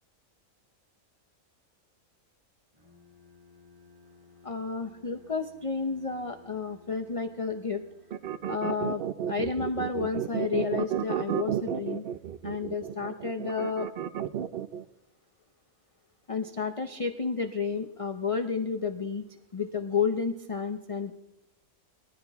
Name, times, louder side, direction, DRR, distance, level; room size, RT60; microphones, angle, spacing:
Bowed string instrument, 2.7-8.6, left 4 dB, 20° right, 5.6 m, -58 dB
voice 1, 4.4-7.8 8.5-9.0 9.3-12.0 12.4-13.9 16.3-19.2 19.5-21.1, left 5 dB, 35° left, 8 dB, 0.6 m, -31 dB
sound 1, 8.1-14.8, right 9 dB, 60° right, 0.6 m, -32 dB
20.5 x 14.0 x 3.5 m, 0.88 s
omnidirectional pair, 1.5 m